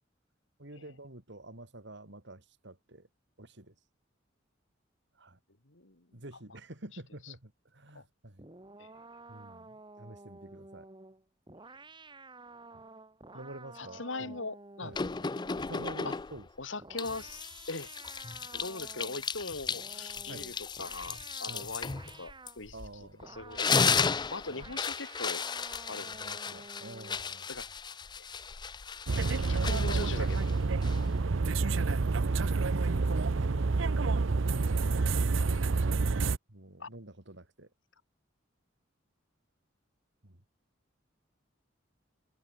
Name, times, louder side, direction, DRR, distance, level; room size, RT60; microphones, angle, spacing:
voice 1, 0.6-3.1 3.4-3.7 5.1-5.4 6.1-8.5 9.3-10.9 12.7-12.8 13.3-14.4 14.8-15.0 15.7-16.5 20.3-20.5 21.5-21.7 22.7-23.4 24.5-24.6 26.0-27.5 32.4-35.3 36.5-37.7 40.2-40.4, right 1 dB, 65° right, 3.4 m, -47 dB
voice 2, 5.7-6.1 7.9-8.0 8.8-8.9 13.8-15.0 16.0-16.1 16.6-17.4 17.7-17.9 18.5-22.8 23.2-25.5 25.9-26.4 27.5-27.7 28.2-28.3 29.5-30.6 36.8-36.9, left 3 dB, 80° left, 3.4 m, -41 dB
sound 1, 8.4-16.2 16.8-19.3 19.7-22.6 23.2-23.8 24.5-27.3, right 3 dB, 25° right, 2.5 m, -51 dB
sound 2, 14.9-16.5 17.0-23.0 23.4-31.2, left 5 dB, 25° left, 0.5 m, -34 dB
sound 3, 29.1-36.4, right 3 dB, 85° right, 0.7 m, -28 dB
head